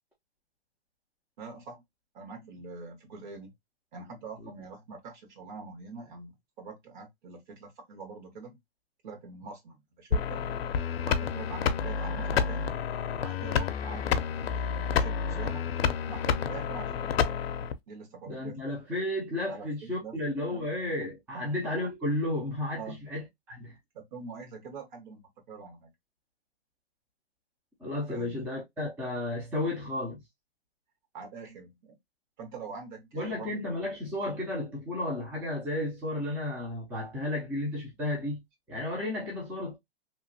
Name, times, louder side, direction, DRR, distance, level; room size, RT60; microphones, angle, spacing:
voice 1, 1.4-1.8 2.1-3.5 3.9-8.6 9.0-10.4 11.0-12.7 13.2-15.7 16.1-17.4 17.9-18.6 19.5-20.2 20.5-20.7 21.3-21.4 22.8-23.0 23.9-25.9 28.1-28.4 31.1-32.0 32.4-33.7, right 4 dB, 50° right, 1.4 m, -44 dB
sound 1, 10.1-17.7, left 7 dB, 70° left, 0.6 m, -29 dB
voice 2, 18.3-23.8 27.8-30.2 33.1-38.4 38.7-39.8, left 1 dB, 5° right, 0.4 m, -33 dB
2.9 x 2.6 x 2.6 m
hypercardioid pair, 140°, 31 cm